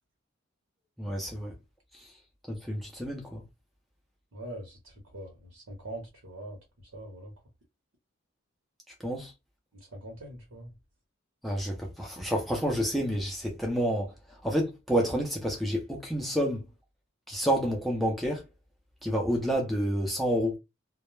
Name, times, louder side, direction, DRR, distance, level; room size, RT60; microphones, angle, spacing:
voice 1, 1.0-1.5 2.5-3.4 9.0-9.3 11.4-14.1 14.4-16.6 17.3-18.4 19.0-20.6, equal, ahead, 0.5 m, -29 dB
voice 2, 4.3-6.6 6.9-7.3 9.7-10.7, right 1 dB, 75° right, 0.9 m, -43 dB
2.2 x 2.0 x 3.1 m
head